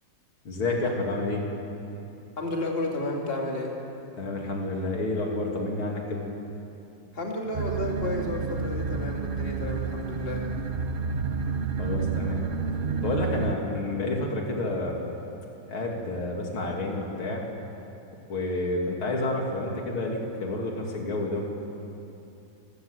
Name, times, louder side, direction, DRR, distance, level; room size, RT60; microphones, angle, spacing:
voice 1, 0.5-1.4 4.2-6.2 11.8-12.4 13.0-15.0 15.6-17.4 18.3-21.4, left 2 dB, 90° left, 0 dB, 3.6 m, -29 dB
voice 2, 2.4-3.8 7.1-10.5, left 1 dB, 30° left, 0 dB, 2.7 m, -32 dB
sound 1, 7.5-13.5, right 5 dB, 90° right, 0.4 m, -30 dB
26.5 x 15.0 x 8.3 m, 2.8 s
omnidirectional pair, 2.2 m